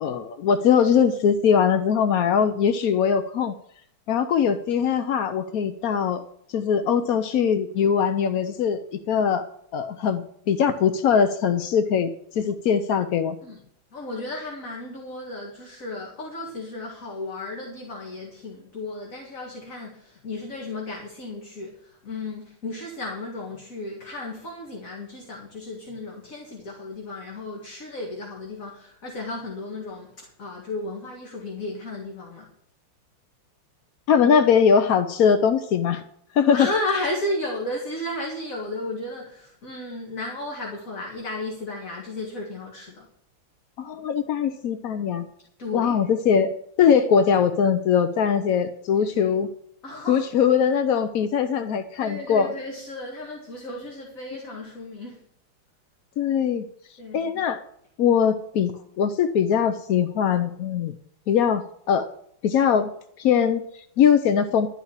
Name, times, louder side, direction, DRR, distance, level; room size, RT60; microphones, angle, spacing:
voice 1, 0.0-3.5 4.1-6.2 6.5-9.5 9.7-13.4 34.1-36.0 36.3-36.7 43.8-45.3 45.7-49.5 50.1-52.5 56.2-56.6 57.1-57.6 58.0-60.9 61.3-62.1 62.4-62.9 63.2-64.7, left 7 dB, 70° left, 0.8 m, -21 dB
voice 2, 13.9-32.5 36.5-43.1 45.6-45.9 49.0-49.4 49.8-50.3 52.0-55.2 57.0-57.5 58.7-58.8, left 2 dB, 40° left, 2.2 m, -34 dB
12.5 x 5.7 x 8.7 m
omnidirectional pair, 2.2 m